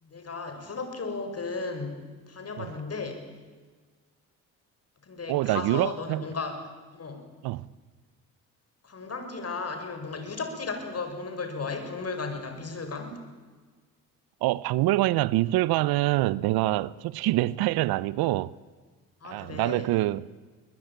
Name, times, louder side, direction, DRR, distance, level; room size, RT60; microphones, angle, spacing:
voice 1, 0.0-3.2 5.0-6.5 6.9-7.2 8.8-13.2 17.2-17.4 19.2-19.9, left 4 dB, 40° left, 6.5 m, -35 dB
voice 2, 5.3-6.2 7.4-7.7 14.4-18.5 19.2-20.3, right 17 dB, 70° right, 0.8 m, -25 dB
23.0 x 20.5 x 8.9 m
hypercardioid pair, 60°, 38 cm